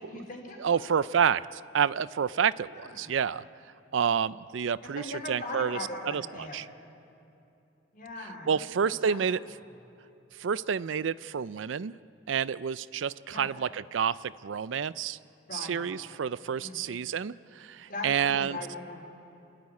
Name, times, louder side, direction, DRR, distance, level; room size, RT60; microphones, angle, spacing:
voice 1, 0.0-0.9 2.7-3.1 5.0-6.6 7.9-8.6 9.0-9.2 13.3-13.5 15.5-15.9 16.6-17.0 17.9-19.0, left 2 dB, 45° left, 0 dB, 4.2 m, -40 dB
voice 2, 0.6-3.4 3.9-5.8 6.1-6.7 8.2-9.4 10.4-11.9 12.3-15.2 15.5-18.6, right 7 dB, 80° right, 18 dB, 0.4 m, -29 dB
27.5 x 13.0 x 9.5 m, 2.7 s
head